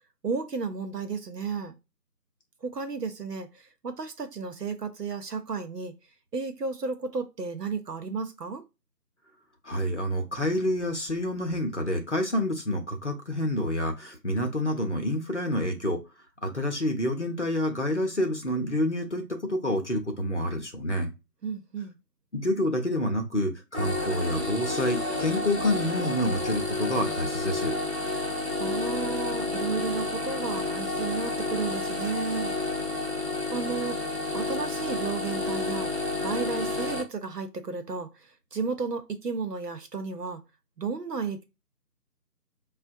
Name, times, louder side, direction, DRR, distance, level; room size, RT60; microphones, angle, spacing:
voice 1, 0.2-1.8 2.6-5.9 6.3-8.6 21.4-21.9 28.6-32.5 33.5-40.4 40.8-41.4, right 5 dB, 75° right, 0.8 m, -33 dB
voice 2, 9.6-16.0 16.4-21.1 22.3-27.7, left 1 dB, 45° left, 0.7 m, -28 dB
sound 1, 23.7-37.0, left 3 dB, 45° right, 0.5 m, -30 dB
4.3 x 2.2 x 2.6 m
figure-of-eight pair, 170°, 48 cm